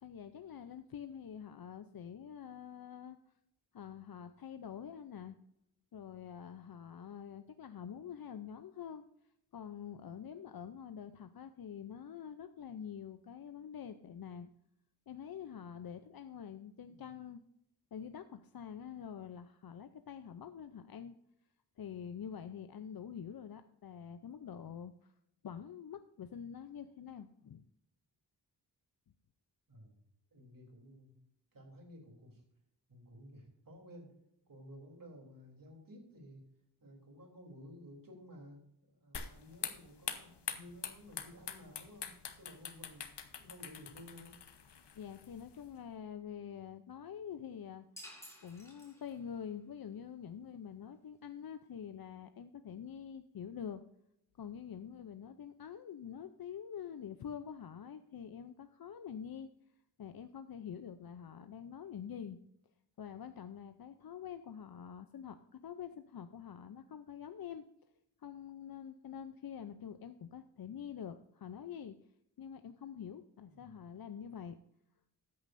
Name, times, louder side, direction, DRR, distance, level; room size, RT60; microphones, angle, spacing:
voice 1, 0.0-3.2 3.7-5.4 5.9-9.0 9.5-14.5 15.1-17.4 17.9-21.2 21.8-25.1 25.4-27.6 44.9-47.9 48.4-53.8 54.4-59.5 60.0-62.4 63.0-67.6 68.2-72.0 72.4-74.6, left 8 dB, 60° left, 9 dB, 0.6 m, -46 dB
voice 2, 16.8-17.1 29.7-30.0 30.3-31.1 31.5-32.4 32.9-34.1 34.5-36.5 36.8-43.1 43.4-44.5 73.4-73.6, equal, 55° right, 1 dB, 3.3 m, -54 dB
sound 1, 39.1-45.7, left 7 dB, 85° left, 1.1 m, -45 dB
sound 2, 48.0-49.4, left 1 dB, 5° left, 4.7 m, -53 dB
14.0 x 9.5 x 2.6 m, 0.78 s
wide cardioid pair, 125°, 40 cm